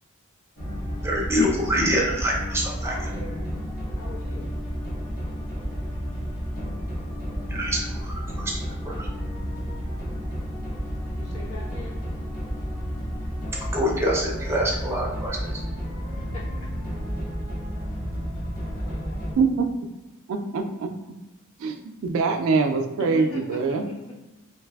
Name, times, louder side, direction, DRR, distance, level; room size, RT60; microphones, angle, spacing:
sound 1, 0.6-19.3, equal, 45° left, 1.1 m, -31 dB
voice 1, 1.0-2.9 7.5-9.1 13.7-15.6, equal, 10° right, -3 dB, 0.5 m, -26 dB
voice 2, 2.9-3.5 4.0-4.6 11.0-12.0 16.2-16.7 18.7-19.5 23.0-24.1, equal, 75° left, -4 dB, 0.9 m, -40 dB
voice 3, 20.3-20.9 21.6-23.9, right 4 dB, 65° right, 5 dB, 0.3 m, -24 dB
3.2 x 2.6 x 2.2 m, 1.0 s
head